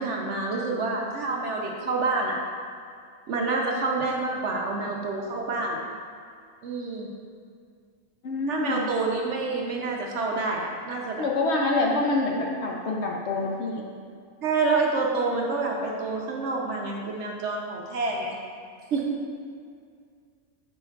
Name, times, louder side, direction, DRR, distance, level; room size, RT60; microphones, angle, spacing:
voice 1, 0.0-2.4 3.3-5.8 6.6-7.1 8.5-11.3 13.4-13.5 14.4-18.4 18.9-19.2, right 3 dB, 65° right, 0 dB, 0.9 m, -28 dB
voice 2, 8.2-8.8 11.2-13.8, left 2 dB, 60° left, -1 dB, 0.8 m, -26 dB
7.6 x 5.3 x 2.4 m, 2.2 s
omnidirectional pair, 1.5 m